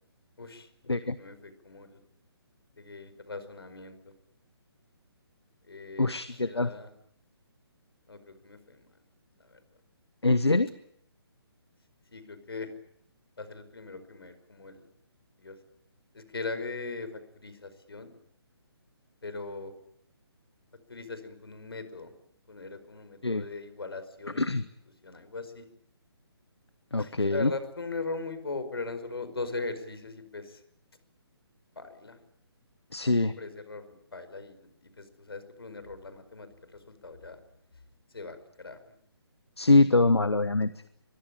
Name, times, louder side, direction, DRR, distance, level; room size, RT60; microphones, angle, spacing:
voice 1, 0.4-0.7 1.0-2.0 2.8-4.1 5.7-6.9 8.1-8.9 9.5-9.6 12.1-12.7 13.4-14.9 15.4-15.6 16.1-18.1 19.2-19.7 20.9-22.1 22.5-24.4 25.0-25.7 26.9-30.6 31.7-32.2 33.0-34.7 35.0-37.4 38.1-38.8, left 3 dB, 65° left, 12 dB, 5.1 m, -40 dB
voice 2, 6.0-6.7 10.2-10.7 23.2-23.5 24.4-24.7 26.9-27.5 32.9-33.3 39.6-40.7, left 2 dB, 80° left, 14 dB, 1.2 m, -24 dB
23.5 x 22.0 x 9.0 m, 0.70 s
figure-of-eight pair, 140°, 14 cm